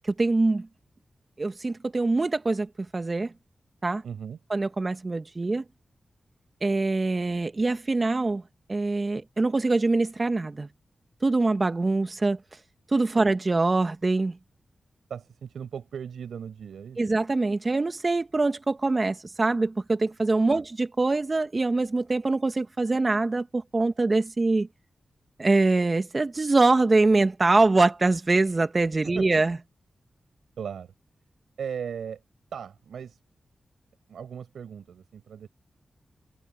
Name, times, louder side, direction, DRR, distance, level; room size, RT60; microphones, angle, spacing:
voice 1, 0.2-0.7 1.4-3.3 3.8-4.0 4.5-5.6 6.6-8.4 8.7-10.7 11.2-12.4 12.9-14.4 17.0-24.7 25.4-29.6, right 3 dB, 40° right, 1.9 m, -24 dB
voice 2, 4.0-4.4 13.2-13.3 15.1-17.0 20.5-20.6 29.0-29.3 30.6-30.9 31.6-32.2 32.5-33.2 34.1-35.5, right 7 dB, 85° right, 6.8 m, -37 dB
cardioid pair, 40°, 0 cm